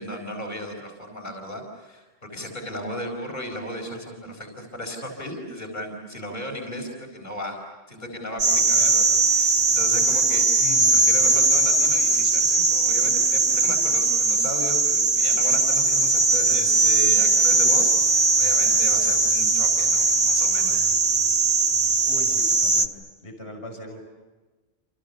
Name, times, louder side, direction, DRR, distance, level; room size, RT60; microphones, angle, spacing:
voice 1, 0.0-7.6 7.9-20.9, equal, 45° left, 2 dB, 4.9 m, -35 dB
voice 2, 8.4-9.2 22.1-24.0, equal, 90° left, 3 dB, 6.4 m, -41 dB
sound 1, 8.4-22.9, right 3 dB, 75° right, 2.0 m, -20 dB
30.0 x 28.5 x 7.0 m, 1.2 s
omnidirectional pair, 1.1 m